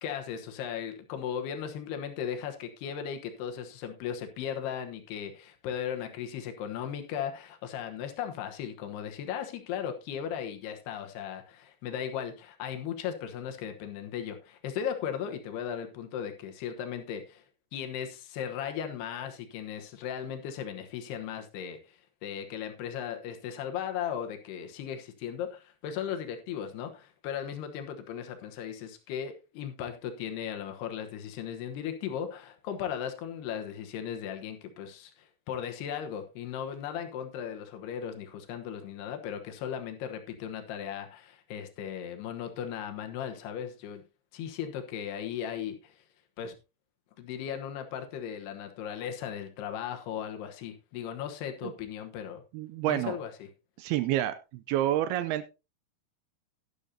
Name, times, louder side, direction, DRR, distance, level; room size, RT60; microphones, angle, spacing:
voice 1, 0.0-17.4 17.7-21.8 22.2-44.0 44.3-45.9 46.4-46.6 47.2-52.4 52.9-53.5, left 8 dB, 75° left, 5 dB, 3.1 m, -37 dB
voice 2, 52.5-53.2 53.8-55.5, right 13 dB, 80° right, 12 dB, 2.4 m, -29 dB
11.5 x 11.5 x 2.8 m, 0.27 s
omnidirectional pair, 4.8 m